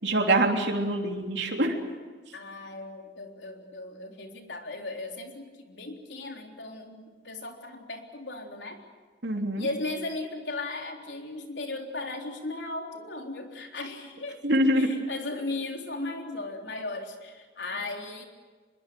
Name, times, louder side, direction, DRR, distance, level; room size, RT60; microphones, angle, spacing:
voice 1, 0.0-1.8 9.2-9.7 14.4-14.9, right 1 dB, 80° right, 1 dB, 3.3 m, -24 dB
voice 2, 2.3-8.8 9.6-14.4 14.7-18.2, left 2 dB, 85° left, 2 dB, 3.8 m, -36 dB
25.0 x 22.5 x 7.8 m, 1.4 s
head